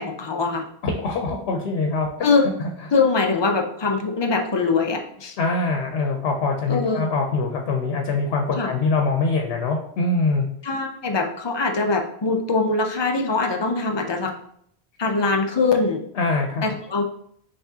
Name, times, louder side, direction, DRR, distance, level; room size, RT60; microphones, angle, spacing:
voice 1, 0.0-0.7 2.2-2.5 2.9-5.4 6.7-7.1 8.6-8.7 10.6-14.3 15.0-16.0 16.6-17.0, left 4 dB, 40° left, 4 dB, 0.4 m, -22 dB
voice 2, 0.8-2.1 2.4-2.7 5.4-10.5 16.1-16.7, left 3 dB, 65° left, 2 dB, 0.9 m, -23 dB
5.8 x 3.3 x 2.8 m, 0.67 s
omnidirectional pair, 1.1 m